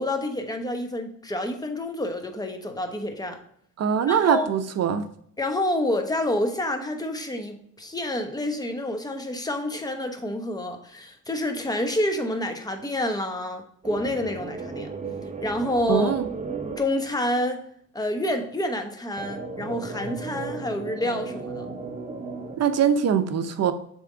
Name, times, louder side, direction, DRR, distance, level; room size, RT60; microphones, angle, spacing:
voice 1, 0.0-3.4 4.1-4.5 5.4-14.9 15.4-16.1 16.8-17.6 17.9-21.7, left 1 dB, 15° left, 5 dB, 1.1 m, -28 dB
voice 2, 3.8-5.0 15.9-16.3 22.6-23.7, right 8 dB, 55° right, 10 dB, 0.7 m, -22 dB
sound 1, 13.8-16.8 19.2-22.6, right 4 dB, 25° right, 0.9 m, -35 dB
7.4 x 3.5 x 3.7 m, 0.67 s
cardioid pair, 90°, 30 cm